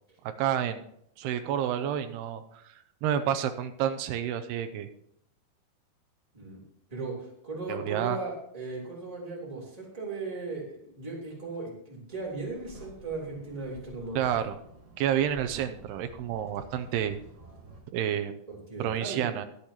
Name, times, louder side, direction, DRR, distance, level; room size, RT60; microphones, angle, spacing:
voice 1, 0.2-0.8 1.2-4.9 7.7-8.2 14.2-14.6 15.0-17.2 17.9-18.4 18.8-19.5, right 9 dB, 90° right, 8 dB, 2.7 m, -29 dB
voice 2, 6.9-14.3 18.5-19.3, right 3 dB, 10° right, -4 dB, 3.1 m, -37 dB
sound 1, 12.1-17.8, equal, 45° right, 0.4 m, -51 dB
22.5 x 8.3 x 3.0 m, 0.71 s
omnidirectional pair, 4.6 m